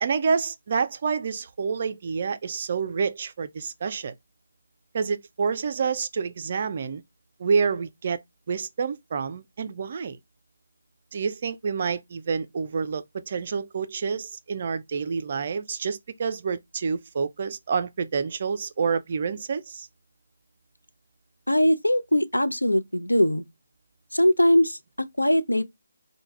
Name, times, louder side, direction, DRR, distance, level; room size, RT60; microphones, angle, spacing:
voice 1, 0.0-4.1 4.9-7.0 7.4-8.2 8.5-10.2 11.1-19.9, right 5 dB, 40° right, 0.4 m, -28 dB
voice 2, 21.5-23.4 24.1-25.6, left 1 dB, 80° left, 0.6 m, -21 dB
4.6 x 2.2 x 3.1 m
figure-of-eight pair, 150°, 0 cm